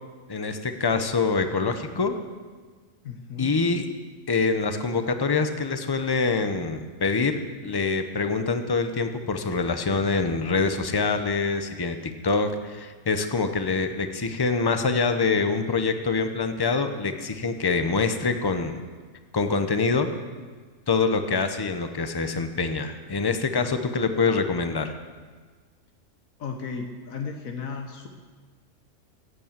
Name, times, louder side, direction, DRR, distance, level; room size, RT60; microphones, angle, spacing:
voice 1, 0.3-2.2 3.4-3.8 4.3-12.0 12.2-18.8 19.3-20.1 20.9-24.9, left 4 dB, 20° left, 8 dB, 0.7 m, -25 dB
voice 2, 3.0-3.6 26.4-28.1, left 5 dB, 80° left, 4 dB, 1.4 m, -34 dB
16.0 x 8.5 x 7.4 m, 1.5 s
omnidirectional pair, 1.4 m